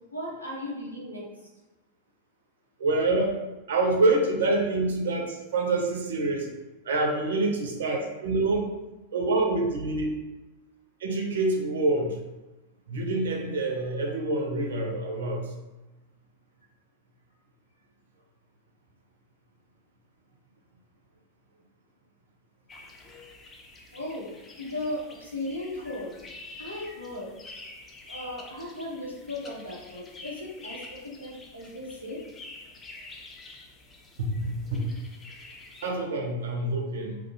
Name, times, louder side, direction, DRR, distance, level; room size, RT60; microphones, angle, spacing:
voice 1, 0.1-1.3 23.9-24.3 24.6-26.1 26.6-27.3 28.1-32.2, left 1 dB, 85° left, -4 dB, 0.6 m, -36 dB
voice 2, 2.8-3.4 3.7-6.5 6.8-8.7 9.1-10.1 11.0-12.2 12.9-15.5 34.2-34.9 35.8-37.2, right 2 dB, 65° right, 1 dB, 0.4 m, -26 dB
sound 1, 22.7-35.9, left 2 dB, 20° left, 0.3 m, -47 dB
2.2 x 2.1 x 2.7 m, 1.1 s
figure-of-eight pair, 90°, 0 cm